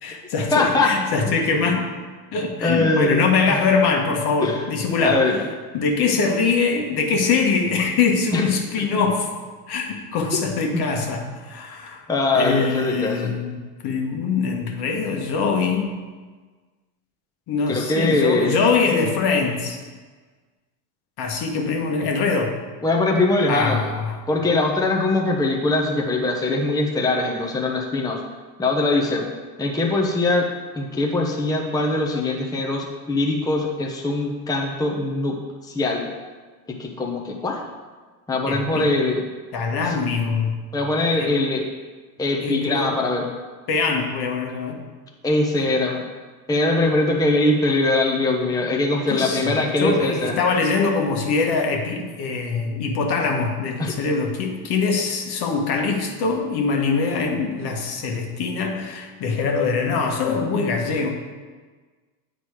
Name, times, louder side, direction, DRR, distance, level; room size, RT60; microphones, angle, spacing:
voice 1, 0.0-1.9 2.3-5.4 5.7-9.3 9.7-12.0 12.3-15.9 17.5-19.8 21.2-22.6 23.5-24.2 38.4-38.9 39.5-40.6 41.2-41.3 42.4-43.0 43.7-44.8 49.1-61.1, left 4 dB, 50° left, 2 dB, 1.4 m, -23 dB
voice 2, 0.5-0.9 1.3-1.4 2.6-3.6 4.4-4.6 5.0-5.4 8.3-8.5 10.7-10.8 12.1-13.3 17.7-18.6 22.8-23.8 24.3-28.2 28.6-29.3 29.6-30.5 30.7-35.4 35.6-36.1 36.7-37.6 38.3-39.2 39.8-40.0 40.7-41.6 42.2-43.3 45.2-46.0 46.5-50.4 53.8-53.9, left 2 dB, 10° left, 0 dB, 0.8 m, -22 dB
8.6 x 4.1 x 4.7 m, 1.4 s
hypercardioid pair, 85°, 49 cm